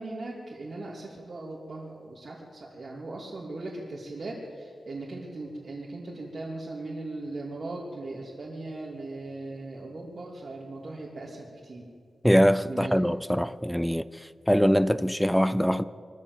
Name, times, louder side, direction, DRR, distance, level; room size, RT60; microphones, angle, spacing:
voice 1, 0.0-11.9 12.7-12.9, right 2 dB, 55° right, 3.0 m, -38 dB
voice 2, 12.2-14.1 14.5-15.8, equal, ahead, 0.5 m, -23 dB
23.0 x 14.0 x 8.2 m
wide cardioid pair, 100°, 0 cm